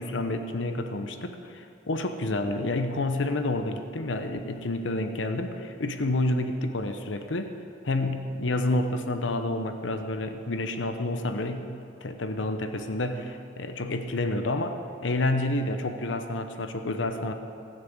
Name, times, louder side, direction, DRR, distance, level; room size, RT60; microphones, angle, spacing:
voice 1, 0.0-7.5 7.8-17.3, left 2 dB, 85° left, 7 dB, 0.8 m, -29 dB
18.0 x 6.4 x 8.0 m, 2.6 s
head